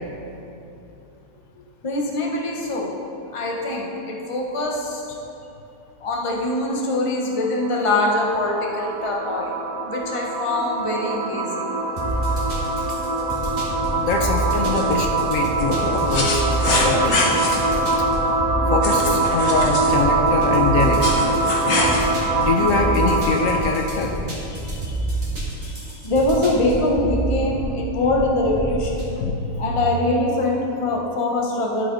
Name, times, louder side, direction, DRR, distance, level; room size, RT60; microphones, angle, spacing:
voice 1, 1.8-2.9 3.3-5.0 6.0-9.5 9.8-11.7 26.0-29.0 29.6-31.9, left 2 dB, 25° left, -2 dB, 0.8 m, -23 dB
sound 1, 7.3-23.9, right 3 dB, 75° right, 1.3 m, -23 dB
sound 2, 12.0-29.1, right 2 dB, 30° right, 1.6 m, -28 dB
voice 2, 14.0-17.6 18.7-21.4 22.4-24.2 24.5-25.2 25.6-25.9 29.2-29.7 30.0-30.1, left 4 dB, 70° left, 2 dB, 1.0 m, -24 dB
sound 3, 14.8-14.9 15.6-17.6 18.8-20.0 20.8-22.0, left 2 dB, 85° left, 1.7 m, -24 dB
11.5 x 5.4 x 3.9 m, 2.9 s
omnidirectional pair, 1.5 m